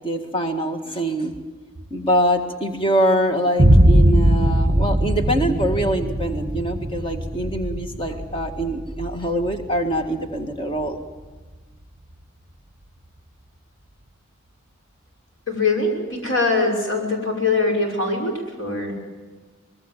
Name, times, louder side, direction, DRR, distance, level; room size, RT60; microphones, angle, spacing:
voice 1, 0.0-1.3 1.9-11.0, equal, 25° left, 5 dB, 1.8 m, -24 dB
Boom, 3.6-11.4, right 1 dB, 30° right, 2.0 m, -20 dB
voice 2, 15.5-18.9, left 3 dB, 60° left, 1 dB, 5.7 m, -22 dB
24.5 x 21.5 x 7.4 m, 1.3 s
head